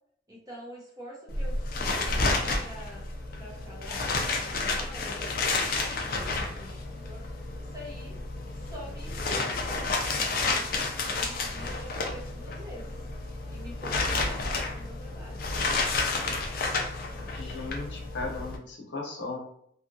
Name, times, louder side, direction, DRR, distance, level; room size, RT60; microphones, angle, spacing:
voice 1, 0.3-3.0 3.4-7.2 7.7-8.2 8.7-10.7 11.1-12.9 13.5-15.4, equal, 20° right, -5 dB, 0.6 m, -45 dB
sound 1, 1.3-18.6, left 3 dB, 50° left, 0.4 m, -31 dB
voice 2, 17.3-19.4, left 3 dB, 70° left, -1 dB, 0.8 m, -36 dB
2.7 x 2.4 x 2.6 m, 0.67 s
head